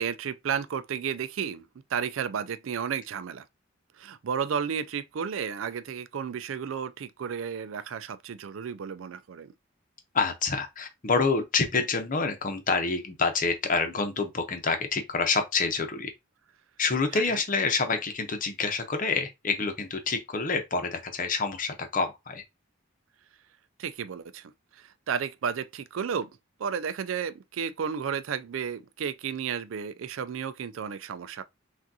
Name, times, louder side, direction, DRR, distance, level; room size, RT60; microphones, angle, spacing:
voice 1, 0.0-3.5 4.0-9.5 17.1-17.4 23.8-26.3 26.6-31.4, right 7 dB, 85° right, 0.4 m, -33 dB
voice 2, 10.1-16.1 16.8-22.4, left 4 dB, 45° left, 0.8 m, -27 dB
6.0 x 2.5 x 2.7 m
head